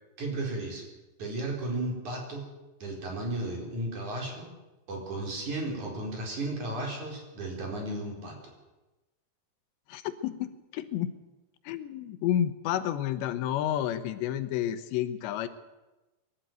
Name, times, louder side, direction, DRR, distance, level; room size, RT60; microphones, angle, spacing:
voice 1, 0.2-0.8 1.2-2.5 2.8-4.5 4.9-8.5, right 2 dB, 45° right, 0 dB, 5.5 m, -34 dB
voice 2, 9.9-11.1 11.7-15.5, left 11 dB, 80° left, 11 dB, 3.2 m, -30 dB
23.0 x 12.5 x 9.2 m, 1.1 s
omnidirectional pair, 5.1 m